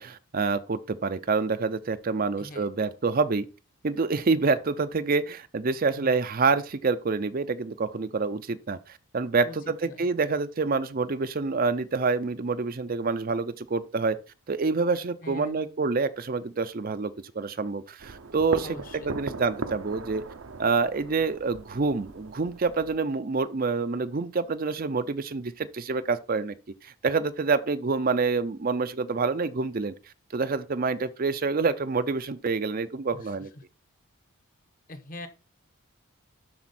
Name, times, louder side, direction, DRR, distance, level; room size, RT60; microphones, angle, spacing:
voice 1, 0.0-3.5 3.8-14.2 14.5-18.8 19.0-20.2 20.6-26.6 26.8-29.9 30.3-33.5, right 4 dB, 40° right, 0.5 m, -27 dB
voice 2, 2.4-2.7 6.0-6.1 9.4-9.6 9.8-10.1 15.2-15.6 18.6-19.1 33.1-33.3 34.9-35.3, left 2 dB, 40° left, 1.0 m, -42 dB
sound 1, 18.0-23.0, right 3 dB, 70° right, 0.8 m, -39 dB
12.0 x 4.3 x 4.2 m
head